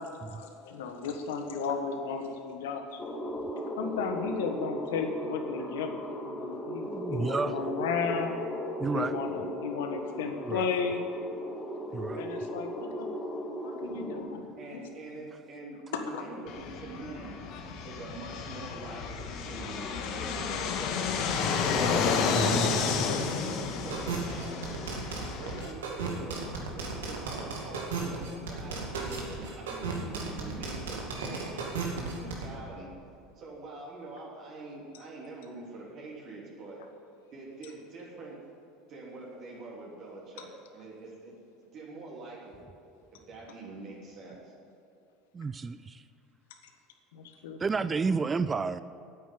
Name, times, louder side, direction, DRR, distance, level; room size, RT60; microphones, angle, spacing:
voice 1, 0.0-3.0 3.8-8.4 8.9-11.0 12.1-13.1 13.6-14.8 15.9-16.2 22.8-23.2 47.1-47.6, left 5 dB, 75° left, 5 dB, 1.4 m, -34 dB
sound 1, 3.0-14.2, equal, 20° left, 1.8 m, -37 dB
voice 2, 6.9-7.6 8.8-9.2 10.5-10.7 11.9-12.3 22.3-23.1 45.3-46.0 47.6-48.8, right 4 dB, 25° right, 14 dB, 0.4 m, -31 dB
voice 3, 14.6-17.3 17.8-21.4 22.0-24.9 25.3-32.9 33.3-36.8 37.3-38.4 38.9-41.4 41.6-42.7 43.1-44.5, right 3 dB, 50° right, -4 dB, 3.2 m, -45 dB
Fixed-wing aircraft airplane, 16.5-25.7, left 5 dB, 60° left, 1.4 m, -31 dB
sound 2, 23.9-32.4, right 4 dB, 80° right, 2.2 m, -34 dB
9.7 x 8.7 x 8.7 m, 2.5 s
hypercardioid pair, 80°, 0 cm